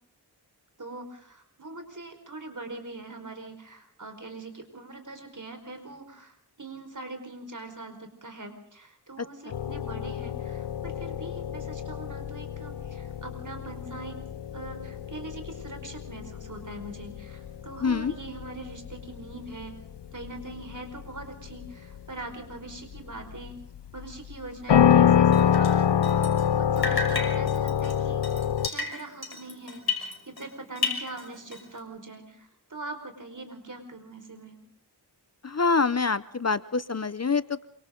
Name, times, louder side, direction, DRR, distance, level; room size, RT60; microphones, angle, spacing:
voice 1, 0.8-14.2 14.5-19.8 20.1-23.6 23.9-28.2 28.6-34.6, right 2 dB, 45° right, 6 dB, 4.9 m, -42 dB
sound 1, 9.5-28.7, left 9 dB, 90° left, 0.8 m, -27 dB
voice 2, 17.8-18.1 35.4-37.7, left 4 dB, 40° left, 16 dB, 0.8 m, -26 dB
Drip, 25.3-26.5 26.8-30.5 30.8-31.8, left 4 dB, 65° left, 6.0 m, -33 dB
28.0 x 25.0 x 3.9 m, 0.63 s
wide cardioid pair, 65°, 40 cm